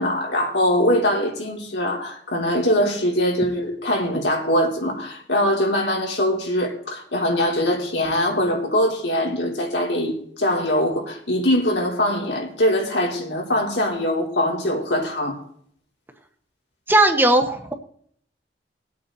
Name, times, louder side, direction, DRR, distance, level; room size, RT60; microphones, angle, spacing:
voice 1, 0.0-15.4, equal, 80° left, 3.7 m, -22 dB
voice 2, 16.9-17.7, right 1 dB, 10° right, 1.1 m, -17 dB
20.0 x 8.4 x 4.0 m
head